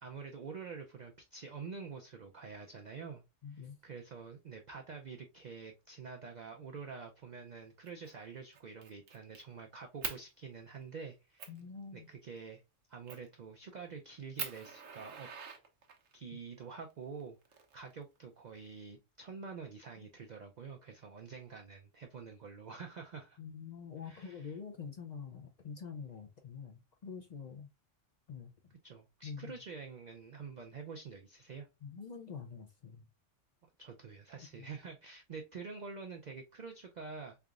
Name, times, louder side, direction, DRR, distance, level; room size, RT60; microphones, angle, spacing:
voice 1, 0.0-3.2 3.5-11.5 11.9-12.6 12.9-15.3 16.1-17.4 17.7-23.4 24.0-24.6 28.8-31.7 33.8-37.4, right 5 dB, 60° right, 0.4 m, -47 dB
voice 2, 3.4-3.8 11.5-12.1 20.0-20.1 23.4-27.7 28.3-28.5 29.2-29.5 31.8-33.1 34.5-34.7, left 6 dB, 60° left, 0.4 m, -46 dB
Fire, 7.8-8.1 8.5-9.4 10.0-10.2 10.8-10.9 11.4-11.6 13.1-13.4 13.8-13.9 14.4-16.2 17.2-18.2, right 6 dB, 85° right, 1.2 m, -43 dB
3.7 x 3.4 x 2.4 m
omnidirectional pair, 1.3 m